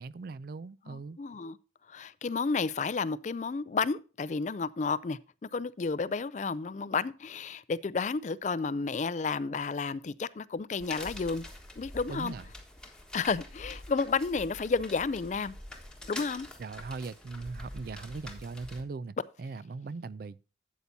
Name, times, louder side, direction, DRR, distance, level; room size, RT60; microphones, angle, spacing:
voice 1, 0.0-1.2 12.1-12.5 16.6-20.4, right 4 dB, 50° right, 0.3 m, -40 dB
voice 2, 0.9-1.6 1.9-11.4 11.8-12.3 13.1-15.6 16.1-16.5, left 4 dB, 40° left, 0.4 m, -31 dB
sound 1, 10.8-18.8, left 1 dB, 5° left, 1.3 m, -45 dB
12.5 x 8.3 x 2.7 m
head